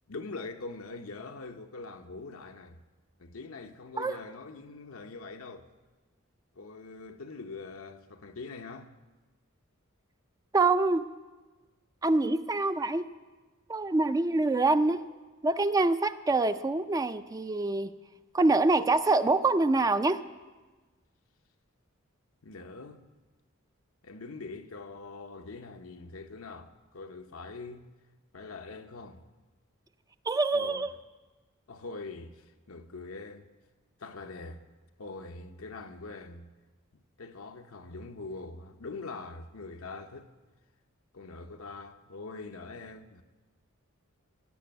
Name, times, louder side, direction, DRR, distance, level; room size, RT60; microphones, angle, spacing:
voice 1, 0.1-2.8 3.2-5.7 6.6-8.9 22.4-23.0 24.0-27.9 28.3-29.2 30.5-30.9 31.7-33.5 34.0-34.6 35.0-36.5 36.9-40.3 41.1-43.2, left 3 dB, 85° left, 0.9 m, -43 dB
voice 2, 10.5-11.1 12.0-13.0 13.7-15.0 15.4-17.9 18.3-20.2 30.3-30.9, right 3 dB, 15° right, 0.4 m, -25 dB
16.0 x 6.2 x 9.1 m
head